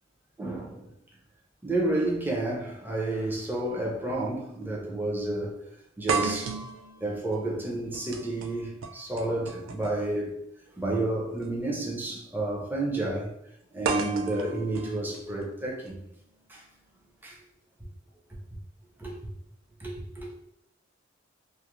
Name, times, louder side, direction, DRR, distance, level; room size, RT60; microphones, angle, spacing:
voice 1, 0.4-0.9 1.6-5.6 6.0-6.6 7.0-10.4 10.8-13.4 13.7-16.0 16.5-16.6 17.2-17.4 19.0-19.1 19.8-20.3, right 2 dB, 10° right, 0.5 m, -30 dB
sound 1, 4.1-4.3 4.6-4.7 6.1-10.1 11.3-11.5 13.8-15.9, right 5 dB, 75° right, 0.3 m, -34 dB
2.3 x 2.1 x 2.9 m
head